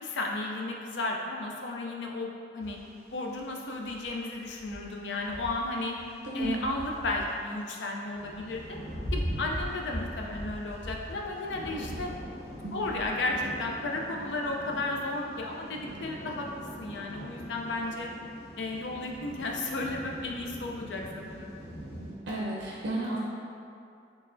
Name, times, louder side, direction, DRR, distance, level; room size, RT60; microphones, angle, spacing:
voice 1, 0.0-2.8 3.1-5.9 6.3-8.6 9.1-12.1 12.7-16.5 16.8-18.1 18.6-21.5, left 2 dB, 85° left, 0 dB, 0.5 m, -34 dB
sound 1, 2.6-3.4 3.7-6.1 6.4-22.1, equal, 60° left, 0.9 m, -41 dB
voice 2, 6.2-6.6 12.6-12.8 22.3-23.2, right 1 dB, 75° right, -5 dB, 0.5 m, -32 dB
4.4 x 3.2 x 2.5 m, 2.5 s
head